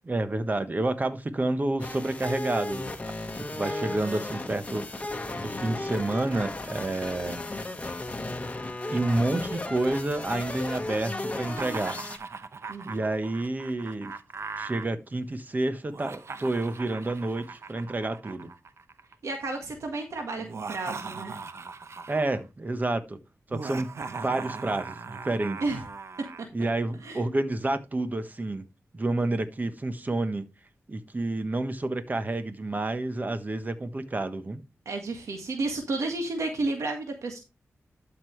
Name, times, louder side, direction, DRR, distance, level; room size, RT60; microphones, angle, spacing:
voice 1, 0.0-4.9 5.4-7.4 8.9-12.0 12.8-14.2 14.6-18.5 22.1-23.2 23.5-25.6 26.5-28.6 28.9-30.4 30.9-34.6, right 2 dB, 35° right, 1.2 m, -29 dB
sound 1, 1.8-12.2, left 2 dB, 25° left, 1.5 m, -35 dB
Laughter, 11.5-14.9 15.8-19.1 20.4-22.4 23.5-26.4, right 4 dB, 65° right, 0.8 m, -39 dB
voice 2, 12.7-13.0 19.2-21.3 25.6-25.8 27.0-27.2 34.9-37.4, right 2 dB, 90° right, 1.8 m, -32 dB
12.0 x 5.4 x 3.2 m
wide cardioid pair, 75°, 5 cm